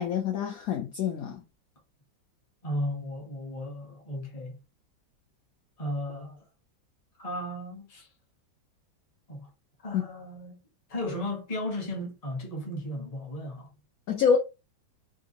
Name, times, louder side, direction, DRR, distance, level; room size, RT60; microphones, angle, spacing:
voice 1, 0.0-1.4 9.9-10.0 14.1-14.4, left 7 dB, 75° left, 0.8 m, -26 dB
voice 2, 2.6-4.6 5.8-6.4 7.2-8.1 9.3-9.5 9.8-10.6 10.9-13.7, left 1 dB, 25° left, 0.9 m, -35 dB
3.7 x 2.5 x 2.8 m
omnidirectional pair, 2.1 m